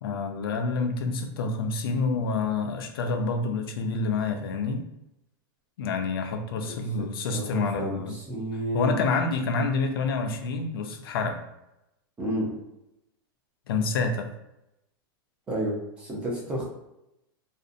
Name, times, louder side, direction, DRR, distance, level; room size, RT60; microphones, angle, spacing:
voice 1, 0.0-4.8 5.8-8.2 8.7-11.4 13.7-14.3, left 4 dB, 75° left, 5 dB, 0.5 m, -28 dB
voice 2, 7.3-9.0 12.2-12.5 15.5-16.6, right 1 dB, 10° right, -4 dB, 0.3 m, -31 dB
2.5 x 2.0 x 2.5 m, 0.88 s
supercardioid pair, 180°, 12 cm